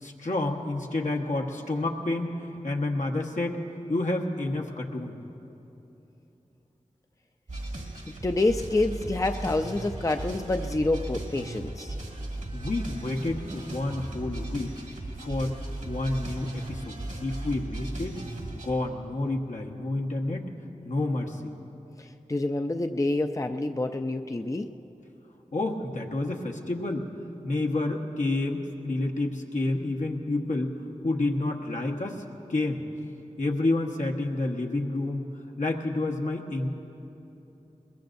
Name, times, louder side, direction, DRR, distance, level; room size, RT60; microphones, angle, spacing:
voice 1, 0.0-3.6 3.9-5.2 12.5-14.8 15.2-15.5 15.8-18.2 18.5-20.5 20.8-21.5 25.5-27.1 27.4-32.2 32.5-32.8 33.4-35.2 35.6-36.7, left 2 dB, 75° left, 0 dB, 1.3 m, -29 dB
sound 1, 7.5-18.7, right 2 dB, 80° right, 2.1 m, -36 dB
voice 2, 8.2-11.9 22.0-24.7, left 2 dB, 25° left, 6 dB, 0.5 m, -27 dB
22.0 x 21.0 x 2.6 m, 3.0 s
cardioid pair, 40°, 13 cm